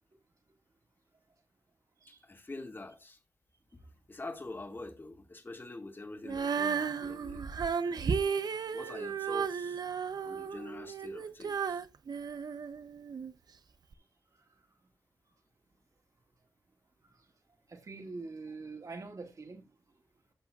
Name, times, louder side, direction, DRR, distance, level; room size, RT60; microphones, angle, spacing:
voice 1, 2.1-3.2 3.7-7.5 8.7-9.8 10.2-11.8, left 2 dB, 30° left, 2.1 m, -45 dB
Female singing, 6.2-13.3 13.9-14.0, right 6 dB, 80° right, 0.7 m, -34 dB
voice 2, 17.7-19.7, right 3 dB, 55° right, 2.1 m, -44 dB
14.5 x 6.2 x 2.4 m
wide cardioid pair, 95°, 7 cm